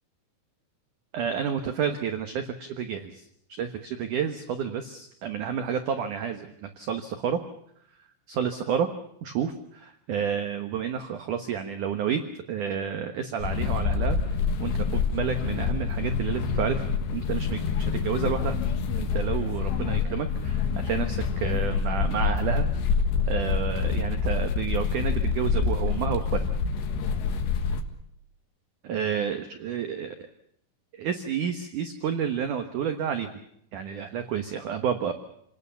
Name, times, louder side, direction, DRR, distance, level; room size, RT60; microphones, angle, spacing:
voice 1, 1.1-7.4 8.3-8.9 9.2-12.2 12.5-16.8 17.1-18.6 19.0-22.7 23.3-26.4 28.8-30.2 30.9-33.3 33.7-35.1, right 8 dB, 65° right, 7 dB, 2.1 m, -30 dB
sound 1, 13.4-27.8, left 5 dB, 70° left, 3.7 m, -27 dB
28.5 x 19.0 x 7.1 m, 0.72 s
omnidirectional pair, 5.3 m